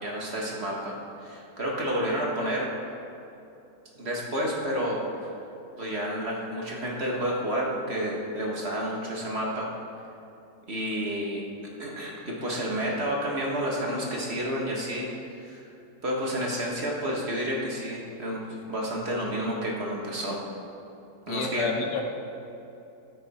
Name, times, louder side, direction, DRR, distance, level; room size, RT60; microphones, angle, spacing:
voice 1, 0.0-2.7 4.0-5.3 5.8-9.7 10.7-11.4 11.8-15.7 16.0-20.4 21.3-21.7, equal, 40° right, -3 dB, 1.7 m, -30 dB
voice 2, 21.3-22.0, left 4 dB, 85° left, 3 dB, 1.7 m, -29 dB
12.5 x 10.0 x 4.3 m, 2.8 s
omnidirectional pair, 1.9 m